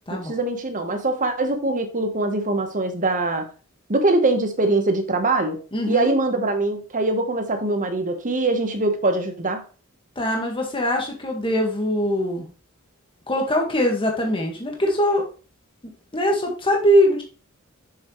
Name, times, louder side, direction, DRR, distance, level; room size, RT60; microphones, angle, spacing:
voice 1, 0.2-3.5 3.9-5.6 5.9-9.6, right 2 dB, 40° right, 1.3 m, -22 dB
voice 2, 5.7-6.1 10.2-12.5 13.3-15.3 16.1-17.2, equal, 25° left, 1.8 m, -22 dB
7.2 x 6.5 x 3.2 m
head